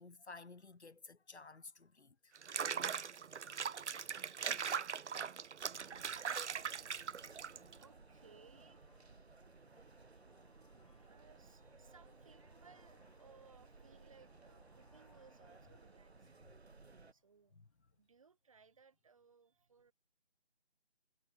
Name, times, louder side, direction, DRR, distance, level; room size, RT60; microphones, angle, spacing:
voice 1, 0.0-2.3, left 3 dB, 75° left, 1.2 m, -54 dB
Water / Bathtub (filling or washing), 2.4-7.8, right 6 dB, 85° right, 0.6 m, -40 dB
sound 1, 5.6-17.1, right 3 dB, 70° right, 1.4 m, -60 dB
sound 2, 7.1-17.5, left 4 dB, 35° left, 3.9 m, -73 dB
voice 2, 7.2-16.5 17.1-17.6 17.9-19.9, right 5 dB, 30° right, 7.0 m, -66 dB
figure-of-eight pair, 165°, 34 cm